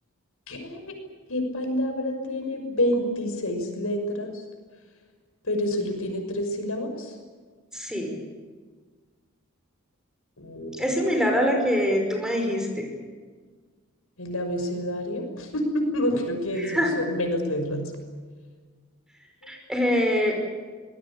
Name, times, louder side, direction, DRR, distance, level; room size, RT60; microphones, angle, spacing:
voice 1, 0.5-0.8 1.3-4.3 5.5-7.1 10.4-10.7 14.2-17.9, left 1 dB, 75° left, 5 dB, 6.1 m, -28 dB
voice 2, 7.7-8.2 10.8-12.9 16.6-17.0 19.5-20.3, equal, 5° right, 3 dB, 5.3 m, -24 dB
26.0 x 20.5 x 8.9 m, 1.5 s
head